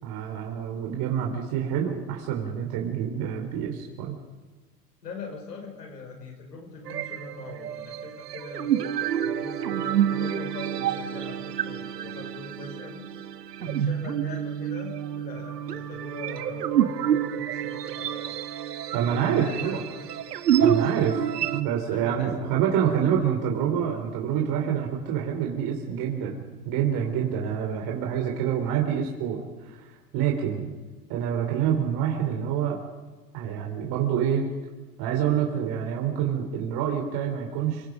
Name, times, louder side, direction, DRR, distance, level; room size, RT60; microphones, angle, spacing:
voice 1, 0.0-4.2 18.9-19.8 20.6-21.2 21.5-30.7 31.1-32.8 33.3-34.5 35.0-37.9, right 8 dB, 50° right, 1 dB, 4.0 m, -27 dB
voice 2, 5.0-8.7 9.2-13.1 13.6-18.4 19.2-19.8 21.9-22.6 23.0-23.3, left 3 dB, 90° left, 2 dB, 6.3 m, -41 dB
sound 1, 6.9-21.6, right 9 dB, 85° right, 1.6 m, -28 dB
29.0 x 23.0 x 5.5 m, 1.3 s
hypercardioid pair, 95°, 47 cm